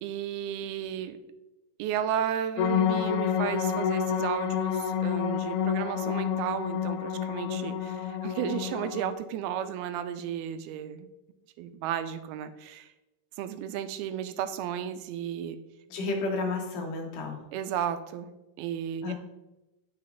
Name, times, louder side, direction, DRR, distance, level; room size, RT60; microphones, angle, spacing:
voice 1, 0.0-1.2 1.8-11.1 11.6-12.9 13.4-15.6 17.5-19.1, right 9 dB, 85° right, 10 dB, 2.5 m, -33 dB
sound 1, 2.6-9.1, left 8 dB, 85° left, 2.5 m, -29 dB
voice 2, 15.9-17.4 19.0-19.1, left 3 dB, 65° left, 2 dB, 2.7 m, -31 dB
9.4 x 6.2 x 3.9 m, 0.98 s
omnidirectional pair, 4.3 m